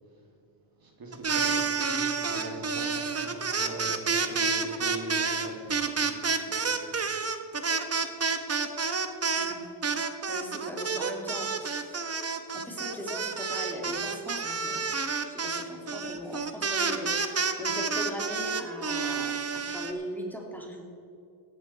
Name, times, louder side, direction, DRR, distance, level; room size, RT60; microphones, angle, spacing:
voice 1, 0.8-7.1 7.5-8.1, right 2 dB, 45° right, 1 dB, 3.0 m, -42 dB
sound 1, 1.1-9.5 9.8-19.9, right 5 dB, 30° right, 1.2 m, -29 dB
voice 2, 10.3-12.0 12.5-14.9 15.3-20.8, equal, 5° left, -1 dB, 2.9 m, -39 dB
15.0 x 10.5 x 4.6 m, 2.6 s
cardioid pair, 75°, 47 cm